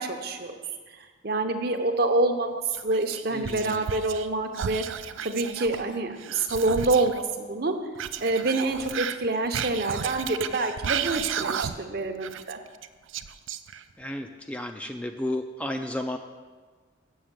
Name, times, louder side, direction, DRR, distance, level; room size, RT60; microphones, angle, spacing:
voice 1, 0.0-4.8 5.2-7.8 8.2-12.6, right 2 dB, 50° right, 6 dB, 0.8 m, -27 dB
Whispering, 2.7-4.3 4.5-7.2 8.0-11.9 12.2-14.0, right 8 dB, 75° right, 0.4 m, -33 dB
voice 2, 3.3-3.9 14.0-16.2, left 1 dB, 5° left, 5 dB, 0.4 m, -33 dB
7.9 x 6.5 x 7.4 m, 1.4 s
head